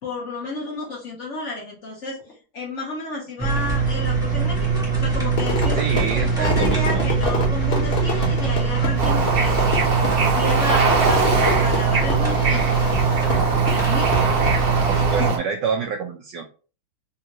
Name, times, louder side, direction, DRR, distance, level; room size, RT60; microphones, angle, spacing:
voice 1, 0.0-5.8 6.1-9.7 10.0-13.0 13.7-14.1 15.2-15.3, left 3 dB, 70° left, -2 dB, 0.6 m, -31 dB
sound 1, 3.4-15.3, right 5 dB, 5° right, 0.4 m, -22 dB
Fireworks, 5.4-14.9, left 2 dB, 40° left, 0.9 m, -28 dB
voice 2, 5.7-7.1 14.9-16.4, right 6 dB, 75° right, 3 dB, 1.0 m, -27 dB
Bird / Ocean, 9.0-15.4, right 4 dB, 55° right, 1.2 m, -23 dB
3.5 x 2.5 x 2.9 m, 0.36 s
omnidirectional pair, 2.3 m